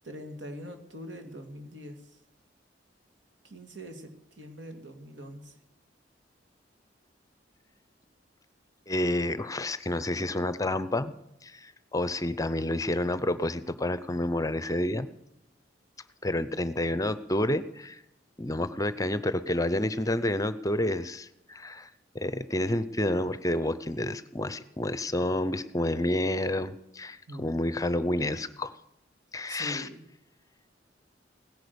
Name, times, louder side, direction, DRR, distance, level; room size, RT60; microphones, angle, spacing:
voice 1, 0.0-2.2 3.4-5.6 27.3-27.5 29.5-30.0, equal, 85° right, 5 dB, 2.5 m, -43 dB
voice 2, 8.9-11.1 11.4-15.1 16.2-18.0 18.4-21.9 22.1-28.7 29.3-29.9, left 1 dB, 20° left, 14 dB, 0.7 m, -29 dB
17.0 x 10.5 x 7.0 m, 0.85 s
head